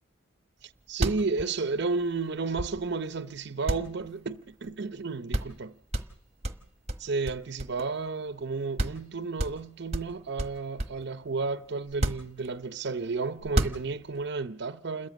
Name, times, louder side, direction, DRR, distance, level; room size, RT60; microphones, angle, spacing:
sound 1, 0.6-0.7 0.9-3.1 3.7-4.7 5.0-5.1 5.3-5.6 5.9-8.1 8.4-8.5 8.8-9.1 9.4-11.1 11.9-12.8 13.4-14.2, right 1 dB, 35° right, 1.2 m, -32 dB
voice 1, 0.6-5.8 7.0-15.1, right 4 dB, 60° right, 0.8 m, -32 dB
28.5 x 13.5 x 7.3 m
head